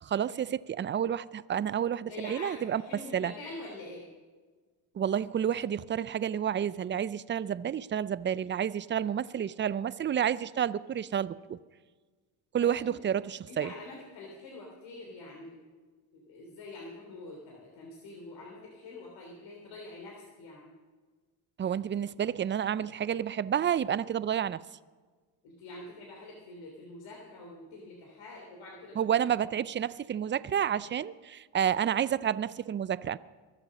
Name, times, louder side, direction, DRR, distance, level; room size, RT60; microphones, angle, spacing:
voice 1, 0.0-3.3 4.9-11.6 12.5-13.7 21.6-24.6 29.0-33.2, right 9 dB, 25° right, 0.4 m, -30 dB
voice 2, 2.0-2.5 2.8-4.0 12.6-12.9 13.5-15.6 16.1-20.7 25.4-29.0, left 2 dB, 65° left, 3.2 m, -45 dB
22.5 x 7.9 x 6.4 m
supercardioid pair, 85°, 49 cm